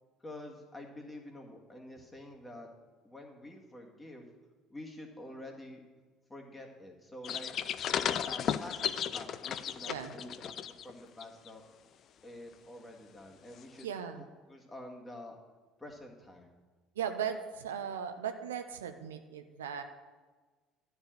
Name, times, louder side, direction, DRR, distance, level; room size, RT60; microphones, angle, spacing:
voice 1, 0.2-2.7 3.0-4.3 4.7-5.8 6.3-7.5 8.2-10.5 10.8-11.6 12.2-13.9 14.2-15.4 15.8-16.6, left 1 dB, 15° left, 1 dB, 1.9 m, -48 dB
sound 1, 7.2-10.9 11.2-11.5 13.8-13.9, left 9 dB, 50° left, 0.4 m, -34 dB
voice 2, 13.8-14.2 17.0-19.8, right 8 dB, 80° right, 8 dB, 0.6 m, -37 dB
11.5 x 4.8 x 7.7 m, 1.3 s
figure-of-eight pair, 60°, 0 cm